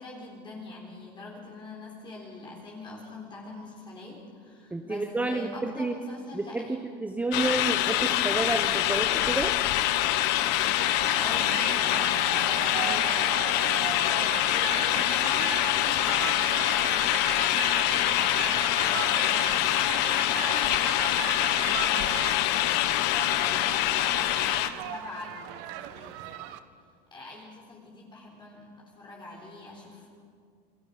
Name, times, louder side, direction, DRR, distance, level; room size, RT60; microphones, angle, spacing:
voice 1, 0.0-6.9 11.1-22.5 22.8-26.5 27.1-30.1, left 2 dB, 20° left, -3 dB, 4.0 m, -43 dB
voice 2, 4.7-5.9 6.3-9.5, right 2 dB, 5° right, 5 dB, 0.9 m, -30 dB
sound 1, 7.3-24.7, left 13 dB, 55° left, 1.2 m, -25 dB
sound 2, 10.8-26.6, right 12 dB, 55° right, 1.2 m, -38 dB
28.0 x 21.0 x 5.1 m, 2.2 s
supercardioid pair, 135°, 21 cm